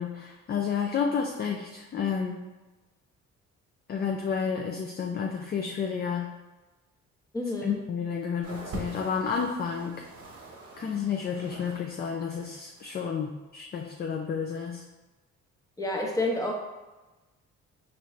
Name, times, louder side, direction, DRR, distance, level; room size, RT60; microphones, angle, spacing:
voice 1, 0.0-2.4 3.9-6.3 7.6-10.1 10.8-14.8, left 6 dB, 35° left, 2 dB, 0.4 m, -31 dB
voice 2, 7.3-7.8 15.8-16.5, left 1 dB, 10° left, 0 dB, 0.8 m, -29 dB
sound 1, 8.4-11.9 12.1-13.0 13.8-13.9, right 2 dB, 50° right, 0.9 m, -44 dB
4.4 x 2.6 x 3.1 m, 1.1 s
cardioid pair, 90°, 30 cm